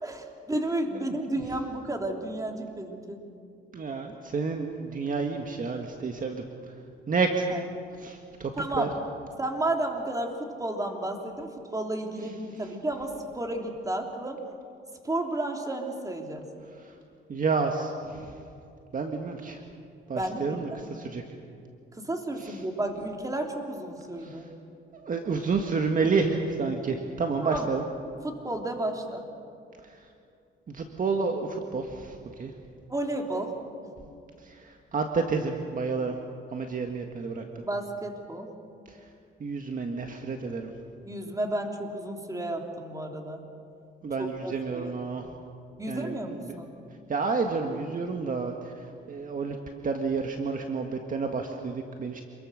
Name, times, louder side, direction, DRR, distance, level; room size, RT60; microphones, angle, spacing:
voice 1, 0.0-3.2 7.5-7.6 8.6-8.9 9.4-14.4 15.0-16.4 20.1-20.7 21.9-24.5 27.4-27.7 28.2-29.2 32.9-33.5 37.6-38.5 41.1-43.4 44.2-45.1 45.8-46.7, right 1 dB, 15° right, 2 dB, 3.4 m, -32 dB
voice 2, 1.0-1.4 3.7-6.4 7.1-7.4 8.0-8.9 16.8-16.9 17.3-18.4 18.9-19.6 20.1-21.2 22.4-22.6 24.2-24.4 24.9-27.8 30.7-32.5 34.4-36.2 36.5-37.4 38.9-39.0 39.4-40.7 44.0-45.2 45.9-46.6 47.1-49.6 49.8-52.2, right 4 dB, 45° right, 3 dB, 1.8 m, -30 dB
27.0 x 22.0 x 6.5 m, 2.5 s
cardioid pair, 90°, 20 cm